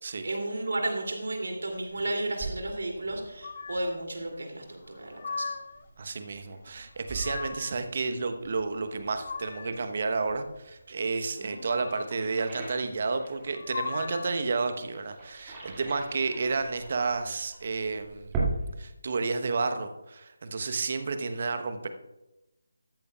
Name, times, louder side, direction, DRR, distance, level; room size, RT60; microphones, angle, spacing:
voice 1, 0.2-5.5 11.4-11.6, right 1 dB, 55° right, 2 dB, 2.8 m, -33 dB
sound 1, 0.9-18.7, right 3 dB, 10° right, 2.3 m, -41 dB
sound 2, 3.4-4.0 4.8-5.8 6.8-7.8 8.7-9.9 11.4-12.3 13.4-14.4, left 4 dB, 40° left, 0.6 m, -39 dB
voice 2, 6.0-18.3 18.8-21.9, right 4 dB, 40° right, 8 dB, 1.0 m, -31 dB
13.5 x 13.5 x 2.4 m, 0.95 s
figure-of-eight pair, 155°, 0 cm